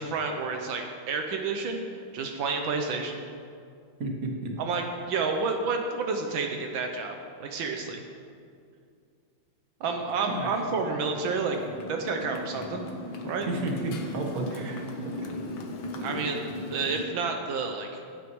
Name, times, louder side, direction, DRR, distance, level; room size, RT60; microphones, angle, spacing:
voice 1, 0.0-3.2 4.6-7.1 7.4-8.0 9.8-11.6 11.9-12.9 13.2-13.5 16.0-16.4 16.7-18.0, right 4 dB, 80° right, 3 dB, 1.6 m, -30 dB
voice 2, 4.0-4.5 10.3-10.6 13.5-14.8 15.1-15.3, right 2 dB, 50° right, 1 dB, 1.6 m, -32 dB
Motorcycle, 9.8-17.1, left 1 dB, 85° left, 1.8 m, -38 dB
16.0 x 8.7 x 3.1 m, 2.3 s
omnidirectional pair, 2.1 m